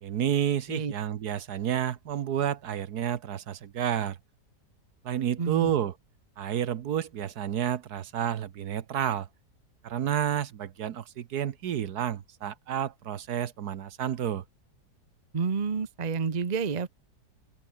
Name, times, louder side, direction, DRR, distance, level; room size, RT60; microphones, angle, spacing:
voice 1, 0.0-4.2 5.0-5.9 6.4-9.3 9.8-14.4, right 10 dB, 70° right, 1.5 m, -30 dB
voice 2, 5.4-5.7 15.3-16.9, right 5 dB, 30° right, 0.9 m, -29 dB
open air
omnidirectional pair, 1.8 m